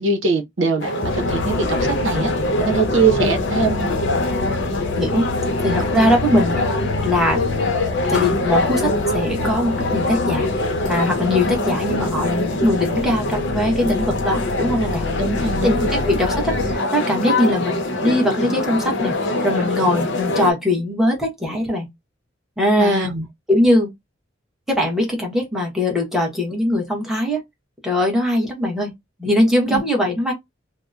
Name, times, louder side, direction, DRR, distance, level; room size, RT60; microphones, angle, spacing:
voice 1, 0.0-2.3 2.6-3.9 15.2-15.9 22.8-23.2 29.7-29.8, right 4 dB, 75° right, 0.8 m, -22 dB
sound 1, 0.8-20.5, left 2 dB, 70° left, 0.7 m, -23 dB
sound 2, 1.0-16.8, left 3 dB, 40° left, 0.3 m, -29 dB
voice 2, 5.6-6.7 7.0-7.4 8.1-10.5 10.9-15.1 15.6-21.9 22.6-23.1 23.5-23.9 24.7-27.4 27.8-28.9 29.2-30.3, left 1 dB, ahead, 0.9 m, -21 dB
2.7 x 2.0 x 2.3 m
head